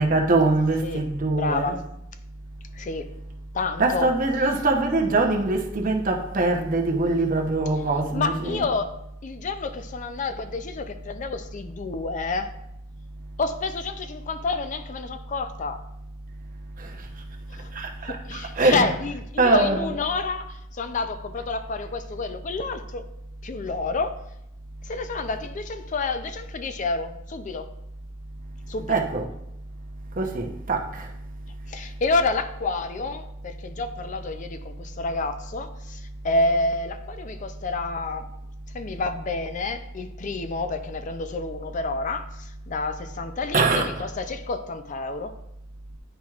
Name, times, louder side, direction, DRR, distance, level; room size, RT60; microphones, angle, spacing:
voice 1, 0.0-1.8 3.8-8.6 16.8-17.1 17.7-18.9 19.4-19.9 28.9-29.2 30.2-31.1 43.5-44.0, right 3 dB, 45° right, 0.8 m, -23 dB
voice 2, 1.3-1.8 2.7-3.1 3.5-4.1 8.1-8.9 9.2-12.5 13.4-15.8 17.5-17.7 18.0-23.1 23.4-24.2 24.8-27.7 28.7-29.0 31.7-38.3 38.7-45.4, left 3 dB, 40° left, 0.4 m, -29 dB
10.0 x 4.5 x 2.4 m
head